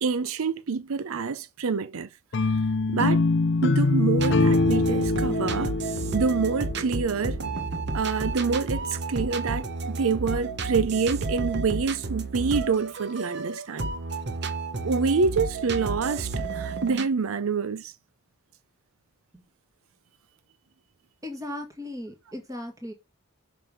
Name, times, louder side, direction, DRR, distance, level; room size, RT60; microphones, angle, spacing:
voice 1, 0.0-2.1 2.5-2.6 2.9-3.2 3.6-5.7 6.1-7.4 7.9-13.9 14.8-17.9, right 5 dB, 70° right, 0.5 m, -27 dB
sound 1, 2.3-7.4, left 3 dB, 55° left, 0.5 m, -24 dB
sound 2, 4.2-17.1, right 3 dB, 50° right, 1.1 m, -31 dB
voice 2, 21.2-22.9, left 1 dB, 15° right, 2.1 m, -37 dB
7.5 x 5.3 x 5.6 m
head